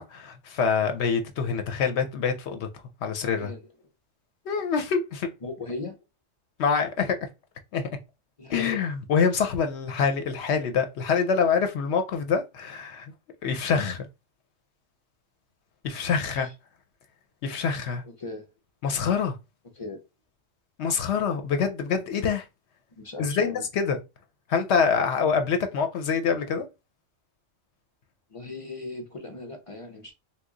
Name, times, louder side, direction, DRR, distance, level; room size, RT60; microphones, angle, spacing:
voice 1, 0.0-2.7 3.0-3.5 4.5-5.3 6.6-7.2 7.7-7.9 8.5-13.1 13.4-14.1 15.8-16.5 17.4-18.0 18.8-19.4 20.8-22.5 23.2-24.0 24.5-26.7, left 6 dB, 65° left, 0.8 m, -25 dB
voice 2, 5.4-6.0 8.4-8.8 16.2-16.5 18.0-18.5 19.8-20.0 23.0-23.6 28.3-30.1, left 2 dB, 45° left, 0.4 m, -38 dB
3.0 x 2.2 x 3.7 m
omnidirectional pair, 1.3 m